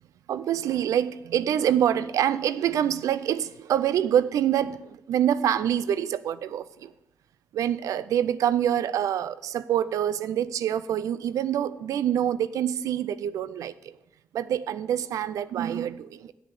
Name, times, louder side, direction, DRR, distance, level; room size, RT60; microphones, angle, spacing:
voice 1, 0.3-6.9 7.5-14.0 14.3-16.3, right 10 dB, 90° right, 16 dB, 0.4 m, -26 dB
7.2 x 7.1 x 8.2 m, 0.87 s
cardioid pair, 55°, 6 cm